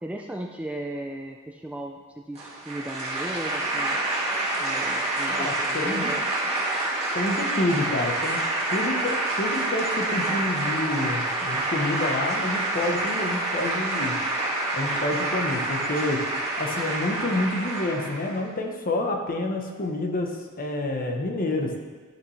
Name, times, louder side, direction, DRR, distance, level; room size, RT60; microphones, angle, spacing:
voice 1, 0.0-4.0 4.6-6.2, right 1 dB, 5° right, 2 dB, 0.4 m, -36 dB
sound 1, 2.3-18.4, right 2 dB, 30° right, 2.0 m, -27 dB
voice 2, 5.3-6.1 7.1-8.4 8.7-14.2 14.7-16.3 16.6-21.8, left 2 dB, 40° left, 3 dB, 0.9 m, -28 dB
11.5 x 5.9 x 3.2 m, 1.4 s
head